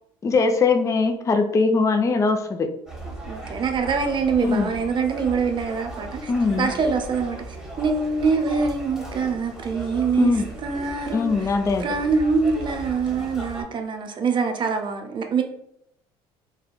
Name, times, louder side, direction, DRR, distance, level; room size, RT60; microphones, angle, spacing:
voice 1, 0.2-2.7 4.4-4.7 6.3-6.7 10.2-10.5 11.1-11.9, left 4 dB, 25° left, 6 dB, 0.4 m, -21 dB
sound 1, 2.9-13.6, right 1 dB, 5° right, 0.8 m, -37 dB
voice 2, 3.3-6.3 6.6-10.3 10.6-11.3 11.8-15.4, right 5 dB, 40° right, 5 dB, 0.5 m, -24 dB
3.5 x 2.1 x 2.2 m, 0.75 s
hypercardioid pair, 70°, 13 cm